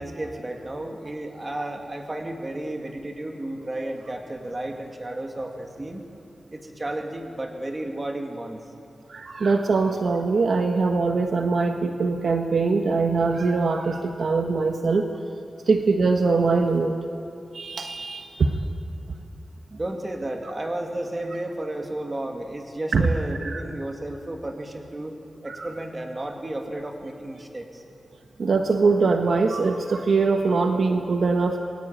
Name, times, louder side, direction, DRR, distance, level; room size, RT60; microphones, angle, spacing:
voice 1, 0.0-6.0 6.5-8.6 19.7-25.1 25.4-27.8, right 1 dB, 20° right, 3 dB, 2.5 m, -33 dB
voice 2, 9.1-15.1 15.7-16.9 17.5-18.5 22.9-23.1 23.4-23.6 25.5-25.7 28.4-31.6, right 4 dB, 60° right, 4 dB, 1.3 m, -22 dB
28.0 x 21.5 x 8.9 m, 2.6 s
wide cardioid pair, 180°, 0 cm